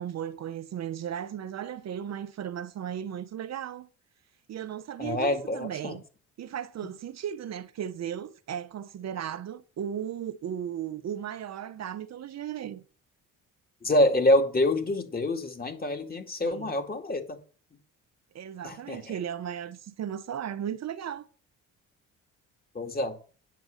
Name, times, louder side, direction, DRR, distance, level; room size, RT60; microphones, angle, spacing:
voice 1, 0.0-3.9 4.5-6.0 6.4-12.8 16.4-16.7 18.3-21.3, right 9 dB, 55° right, 0.8 m, -36 dB
voice 2, 5.0-6.0 13.8-17.4 18.6-19.0 22.7-23.2, left 1 dB, 30° left, 2.3 m, -26 dB
9.2 x 6.8 x 6.4 m
cardioid pair, 85°, 33 cm